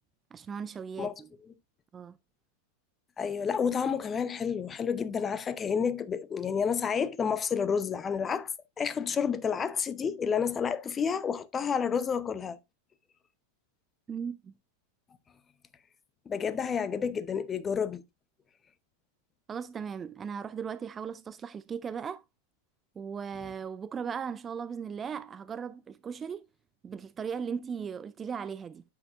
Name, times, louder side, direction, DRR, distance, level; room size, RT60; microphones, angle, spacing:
voice 1, 0.3-1.3 1.9-2.1 14.1-14.5 19.5-22.2 23.0-26.5 26.8-28.8, right 6 dB, 20° right, 0.4 m, -37 dB
voice 2, 3.2-8.5 8.8-12.6 16.3-18.0, left 6 dB, 20° left, 0.8 m, -30 dB
9.4 x 7.8 x 2.5 m
figure-of-eight pair, 90°, 0 cm